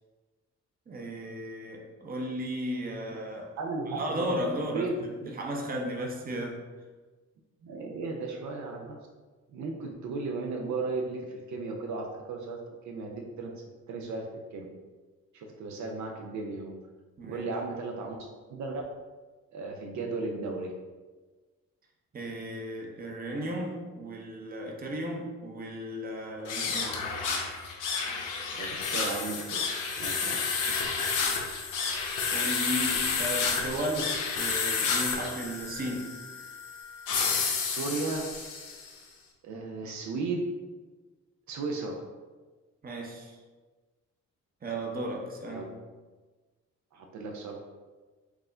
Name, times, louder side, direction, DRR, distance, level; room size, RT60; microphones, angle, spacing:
voice 1, 0.9-3.5 4.0-4.9 5.3-6.6 17.2-17.4 22.1-27.1 32.3-36.1 42.8-43.4 44.6-45.7, right 1 dB, 30° right, 1 dB, 0.7 m, -35 dB
voice 2, 3.6-4.9 5.2-5.3 7.6-9.0 9.5-12.6 12.8-13.5 13.9-14.7 15.3-16.7 17.2-18.2 18.5-18.8 19.5-20.7 28.5-29.6 30.0-30.4 30.6-30.8 37.6-38.2 38.8-38.9 39.4-40.4 41.5-41.9 45.5-45.6 46.9-47.6, right 3 dB, 70° right, 1 dB, 0.6 m, -35 dB
sound 1, 26.4-38.9, left 5 dB, 90° left, 0.7 m, -31 dB
4.7 x 2.1 x 3.7 m, 1.3 s
cardioid pair, 90°, 30 cm